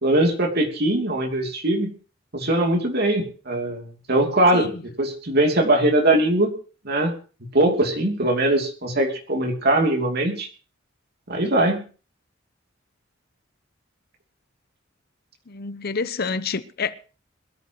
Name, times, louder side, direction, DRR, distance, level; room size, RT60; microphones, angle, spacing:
voice 1, 0.0-1.9 2.3-4.7 5.0-6.5 6.8-7.1 7.5-10.5 11.3-11.8, right 1 dB, 55° right, 2.9 m, -21 dB
voice 2, 15.5-17.0, left 4 dB, 50° left, 0.9 m, -28 dB
22.5 x 13.5 x 3.0 m
head